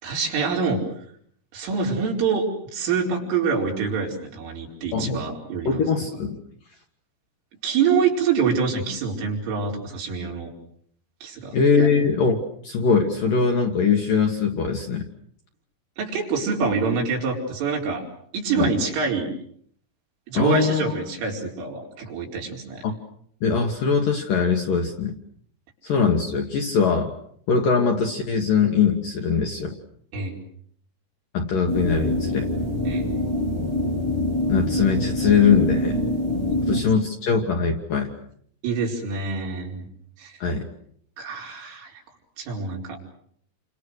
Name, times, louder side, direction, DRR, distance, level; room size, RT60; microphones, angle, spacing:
voice 1, 0.0-0.8 1.5-2.5 2.7-5.8 7.6-10.5 11.2-11.9 16.0-18.0 18.3-19.3 20.3-22.8 30.1-30.4 32.9-33.1 36.5-36.6 38.6-39.9 40.2-40.4 41.2-42.0 42.4-43.0, right 5 dB, 70° right, 0 dB, 7.2 m, -26 dB
voice 2, 4.9-5.2 5.7-6.4 11.5-12.4 12.6-15.1 18.6-18.7 20.3-20.9 22.8-23.0 23.4-25.1 25.8-27.1 27.5-29.8 31.3-32.5 34.5-36.0 36.7-38.1 40.4-40.7, left 5 dB, 60° left, 3 dB, 2.6 m, -21 dB
sound 1, 31.7-36.8, left 1 dB, 15° right, 3.7 m, -25 dB
29.5 x 26.0 x 6.5 m, 0.64 s
omnidirectional pair, 5.9 m